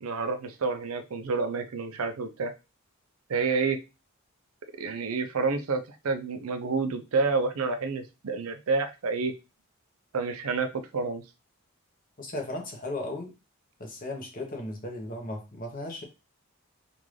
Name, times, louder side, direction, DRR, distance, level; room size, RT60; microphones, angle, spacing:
voice 1, 0.0-2.5 3.3-3.8 4.8-9.3 10.1-10.7 10.9-11.2, right 4 dB, 80° right, 8 dB, 0.5 m, -29 dB
voice 2, 12.2-13.3 13.8-16.0, left 1 dB, 40° left, 2 dB, 0.9 m, -36 dB
3.7 x 2.5 x 3.1 m, 0.27 s
head